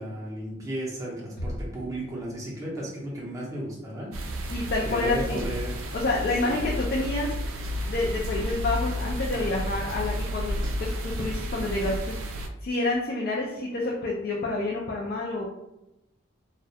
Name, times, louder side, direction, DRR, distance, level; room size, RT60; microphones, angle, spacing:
voice 1, 0.0-4.5 4.8-5.8 6.4-6.6, right 1 dB, 15° right, -5 dB, 0.5 m, -34 dB
sound 1, 1.4-3.0, equal, 70° left, 1.1 m, -38 dB
sound 2, 4.1-12.5, equal, 80° right, 0.4 m, -31 dB
voice 2, 4.5-5.5 5.9-7.3 7.9-15.5, left 2 dB, 45° left, -3 dB, 0.3 m, -28 dB
2.2 x 2.1 x 2.7 m, 0.93 s
head